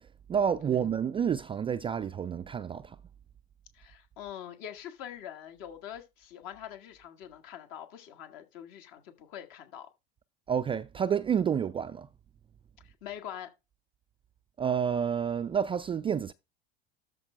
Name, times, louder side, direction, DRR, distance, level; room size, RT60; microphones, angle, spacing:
voice 1, 0.3-3.0 10.5-12.1 14.6-16.3, right 8 dB, 15° right, 0.4 m, -29 dB
voice 2, 3.7-9.9 12.8-13.5, left 10 dB, 55° left, 1.9 m, -44 dB
13.0 x 5.1 x 3.3 m
figure-of-eight pair, 75°, 32 cm